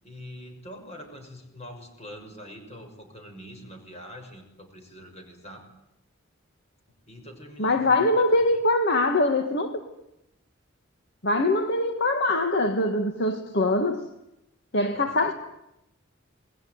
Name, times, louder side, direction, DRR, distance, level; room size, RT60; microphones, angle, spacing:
voice 1, 0.0-5.7 7.1-8.2 14.9-15.3, equal, 35° left, 5 dB, 6.4 m, -44 dB
voice 2, 7.6-9.8 11.2-14.1 14.7-15.3, left 2 dB, 55° left, 6 dB, 1.8 m, -23 dB
28.5 x 21.0 x 9.6 m, 0.88 s
head